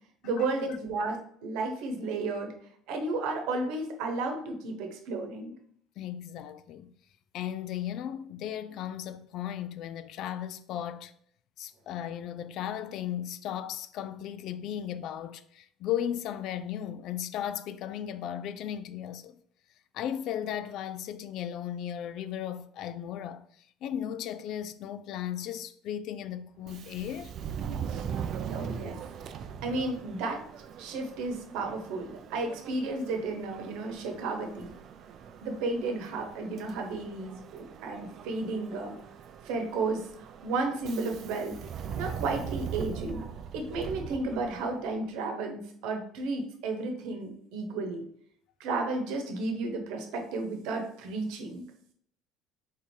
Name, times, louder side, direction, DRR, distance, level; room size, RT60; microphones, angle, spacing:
voice 1, 0.2-2.5 2.9-5.5 27.9-28.1 28.5-29.0 29.6-30.4 30.8-34.7 35.4-39.0 39.4-41.6 42.0-43.2 43.5-48.0 48.6-51.6, right 3 dB, 75° right, 1.0 m, -33 dB
voice 2, 6.0-6.9 7.3-11.1 11.6-19.4 19.9-23.4 23.8-27.3, left 10 dB, 60° left, 0.3 m, -36 dB
Subway metro underground, 26.6-45.0, right 7 dB, 50° right, 0.4 m, -41 dB
3.6 x 2.8 x 4.6 m
supercardioid pair, 95°, 0 cm